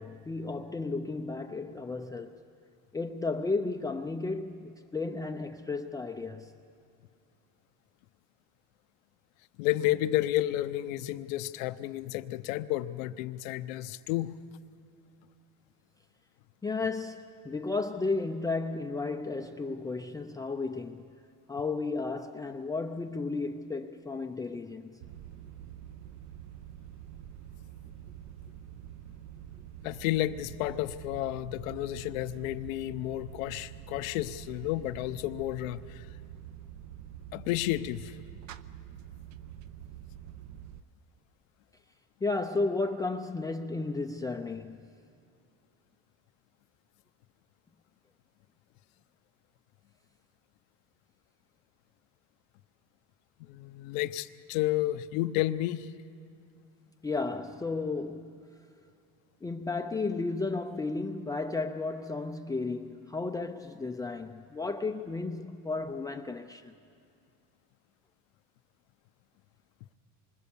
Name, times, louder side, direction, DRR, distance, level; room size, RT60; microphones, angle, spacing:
voice 1, 0.0-2.4 2.9-6.5 16.6-21.0 21.5-25.0 42.2-44.8 57.0-58.4 59.4-66.7, left 3 dB, 10° left, 0.5 m, -33 dB
voice 2, 9.6-14.4 29.8-36.1 37.3-38.2 53.4-55.9, left 15 dB, 85° left, 0.9 m, -31 dB
sound 1, 25.0-40.8, right 10 dB, 45° right, 0.8 m, -46 dB
26.0 x 25.0 x 7.1 m
cardioid pair, 130°, 39 cm